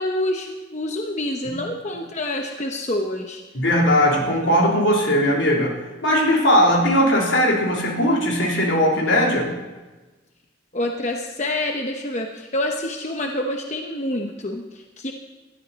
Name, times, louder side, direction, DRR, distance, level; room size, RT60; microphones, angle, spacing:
voice 1, 0.0-3.4 10.7-15.1, left 1 dB, 35° left, 3 dB, 0.9 m, -27 dB
voice 2, 3.5-5.7 6.0-9.5, equal, 80° left, -1 dB, 3.3 m, -19 dB
20.0 x 13.0 x 4.1 m, 1.2 s
head